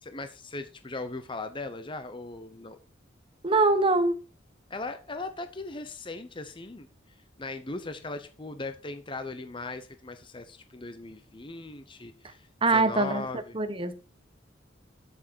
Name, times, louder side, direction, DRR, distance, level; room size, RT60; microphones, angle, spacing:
voice 1, 0.0-2.8 4.7-6.9 7.4-13.6, left 3 dB, 25° left, 9 dB, 0.8 m, -38 dB
voice 2, 3.4-4.1 12.6-13.2 13.5-13.9, right 3 dB, 25° right, 10 dB, 1.2 m, -23 dB
12.5 x 6.4 x 4.5 m, 0.34 s
head